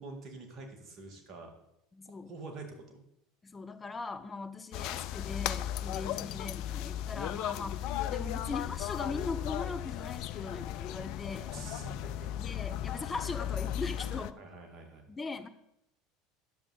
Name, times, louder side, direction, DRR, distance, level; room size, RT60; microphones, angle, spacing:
voice 1, 0.0-1.5 2.1-3.0 5.9-6.2 11.5-12.3 14.4-15.1, right 3 dB, 45° right, 3 dB, 2.0 m, -46 dB
voice 2, 1.9-2.3 3.4-11.5 12.4-14.4 15.1-15.5, left 3 dB, 20° left, 9 dB, 0.8 m, -40 dB
sound 1, 4.7-14.3, left 12 dB, 55° left, 0.3 m, -36 dB
10.0 x 6.9 x 4.1 m, 0.83 s
figure-of-eight pair, 70°, 0 cm